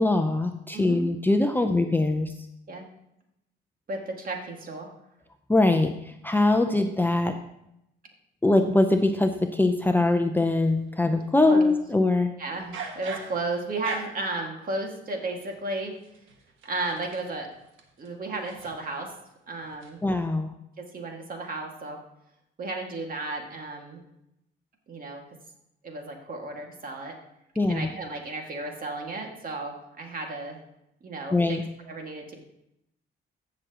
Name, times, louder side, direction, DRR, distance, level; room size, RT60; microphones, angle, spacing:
voice 1, 0.0-2.3 5.5-7.4 8.4-12.3 20.0-20.5 27.6-27.9 31.3-31.6, left 2 dB, 10° left, 5 dB, 0.6 m, -22 dB
voice 2, 3.9-4.9 11.5-11.7 12.4-15.9 16.6-17.5 18.0-19.1 19.5-20.0 20.8-22.0 22.6-24.0 24.9-25.2 25.8-27.2 27.7-30.6 31.0-31.6 31.9-32.4, right 2 dB, 45° right, 2 dB, 2.0 m, -34 dB
sound 1, 10.7-11.3 12.5-14.3 15.4-19.2 19.5-19.9, right 5 dB, 80° right, 1.4 m, -41 dB
14.5 x 6.3 x 2.9 m, 0.81 s
cardioid pair, 90°, 20 cm